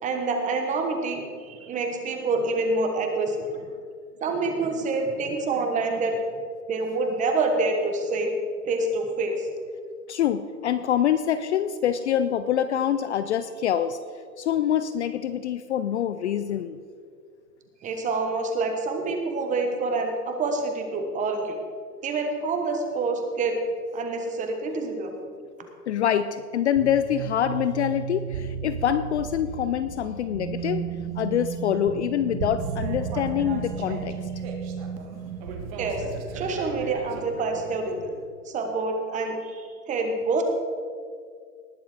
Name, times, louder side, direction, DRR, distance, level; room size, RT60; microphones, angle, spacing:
voice 1, 0.0-3.4 4.2-6.2 6.7-8.3 8.6-9.5 17.8-21.6 22.0-23.6 23.9-25.1 35.8-36.0 36.3-38.1 38.4-40.4, right 3 dB, 15° right, 5 dB, 1.2 m, -27 dB
voice 2, 10.1-14.0 14.4-16.8 25.9-30.8 31.2-34.2, left 9 dB, 45° left, 12 dB, 0.5 m, -25 dB
sound 1, 26.7-38.1, right 6 dB, 75° right, 1.9 m, -34 dB
sound 2, 32.6-38.1, right 5 dB, 35° right, 1.8 m, -41 dB
19.5 x 7.0 x 4.9 m, 2.1 s
hypercardioid pair, 140°, 47 cm